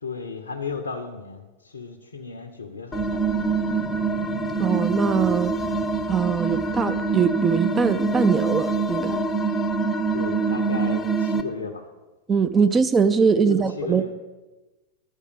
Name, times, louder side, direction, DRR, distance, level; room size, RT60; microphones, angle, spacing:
voice 1, 0.0-3.7 10.1-11.9 13.3-14.1, left 5 dB, 70° left, 4 dB, 0.7 m, -35 dB
sound 1, 2.9-11.4, right 4 dB, 15° left, 0.7 m, -25 dB
voice 2, 4.6-5.6 6.1-9.2 12.3-14.0, right 6 dB, 20° right, 10 dB, 0.4 m, -21 dB
11.0 x 4.9 x 6.9 m, 1.2 s
figure-of-eight pair, 90°, 0 cm